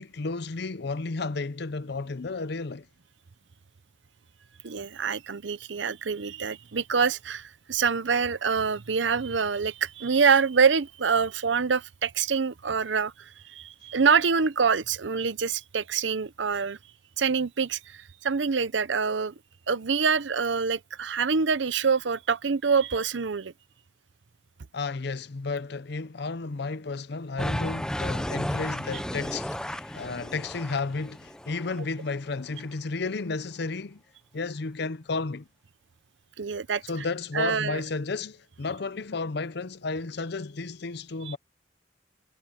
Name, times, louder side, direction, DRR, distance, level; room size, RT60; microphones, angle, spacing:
voice 1, 0.0-2.9 24.7-34.0 34.3-35.5 36.8-41.4, left 3 dB, 60° left, 0.7 m, -32 dB
voice 2, 4.6-13.1 13.5-16.8 17.2-17.8 18.2-19.3 19.7-23.5 36.4-36.8 37.3-37.8 41.3-41.4, right 5 dB, 75° right, 0.7 m, -25 dB
sound 1, 27.4-31.8, equal, 5° left, 0.5 m, -33 dB
head